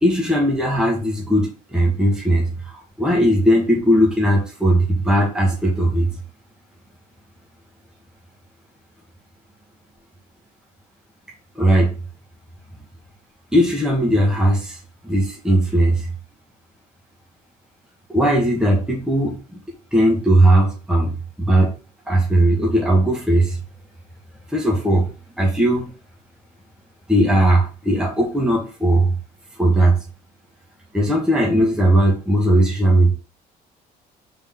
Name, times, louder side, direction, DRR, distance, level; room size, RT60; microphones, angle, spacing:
voice 1, 0.0-6.1 11.5-11.9 13.5-14.8 15.0-16.1 18.1-19.4 19.9-21.7 22.1-23.6 24.5-25.1 25.4-25.9 27.1-29.1 29.6-30.0 30.9-33.1, right 1 dB, 5° right, -3 dB, 1.3 m, -18 dB
3.8 x 3.7 x 3.7 m, 0.35 s
cardioid pair, 110°, 17 cm